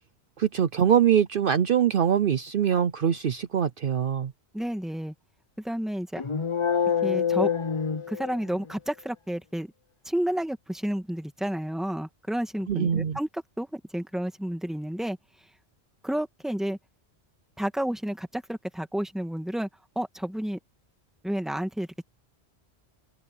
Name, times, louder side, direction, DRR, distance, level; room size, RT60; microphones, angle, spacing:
voice 1, 0.4-4.3 12.7-13.2, right 8 dB, 60° right, 0.8 m, -23 dB
voice 2, 4.5-5.1 5.6-6.2 7.0-7.5 8.1-9.7 10.0-15.2 16.0-16.8 17.6-19.7 19.9-20.6 21.2-22.0, right 1 dB, ahead, 1.6 m, -31 dB
sound 1, 6.2-8.7, left 7 dB, 35° left, 0.6 m, -26 dB
omnidirectional pair, 1.1 m